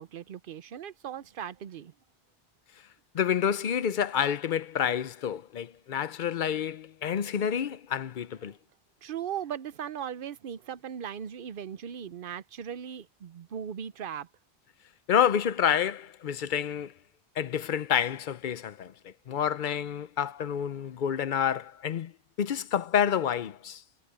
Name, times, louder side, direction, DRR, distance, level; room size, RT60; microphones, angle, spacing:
voice 1, 0.0-1.9 9.0-14.3, right 8 dB, 60° right, 0.8 m, -38 dB
voice 2, 3.1-8.6 15.1-16.9 17.4-22.1 22.4-23.8, left 8 dB, 55° left, 0.7 m, -28 dB
omnidirectional pair, 1.1 m